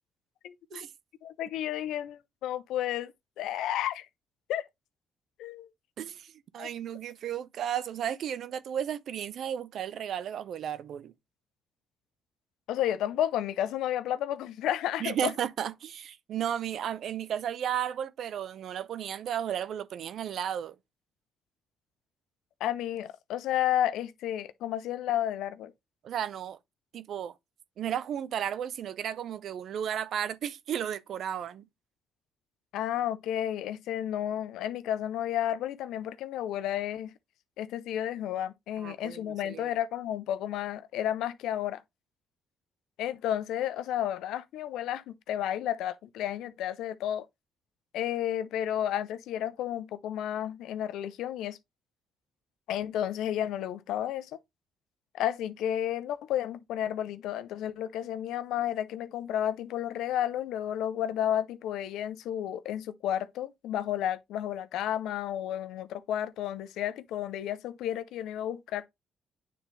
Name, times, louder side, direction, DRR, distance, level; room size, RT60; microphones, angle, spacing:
voice 1, 0.4-0.8 1.2-4.1 4.5-4.6 5.4-5.7 6.6-6.7 12.7-15.3 22.6-25.7 32.7-37.1 37.6-41.8 43.0-47.3 47.9-51.6 52.7-54.3 55.1-68.8, left 11 dB, 85° left, 0.5 m, -32 dB
voice 2, 6.0-11.1 15.0-20.8 26.0-26.6 26.9-27.3 27.8-31.7 38.8-39.7, right 9 dB, 70° right, 0.5 m, -34 dB
9.2 x 3.9 x 3.2 m
cardioid pair, 90°, 0 cm